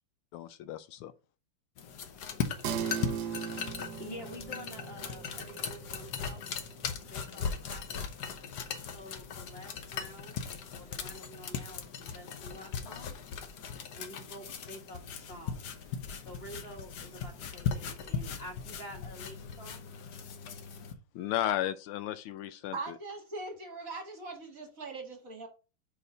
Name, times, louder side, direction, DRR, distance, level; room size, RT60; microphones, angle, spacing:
voice 1, 0.3-1.1 21.1-22.7, left 12 dB, 80° left, 1.4 m, -34 dB
sound 1, 1.8-20.9, left 6 dB, 60° left, 1.2 m, -39 dB
sound 2, 2.6-12.4, right 8 dB, 65° right, 1.0 m, -42 dB
voice 2, 4.0-6.4 7.0-8.1 8.9-10.4 10.7-13.1 13.9-15.0 15.3-15.6 16.2-19.8, equal, 35° left, 1.2 m, -48 dB
voice 3, 22.7-25.5, right 3 dB, 45° right, 1.5 m, -41 dB
4.9 x 4.8 x 5.3 m
omnidirectional pair, 2.4 m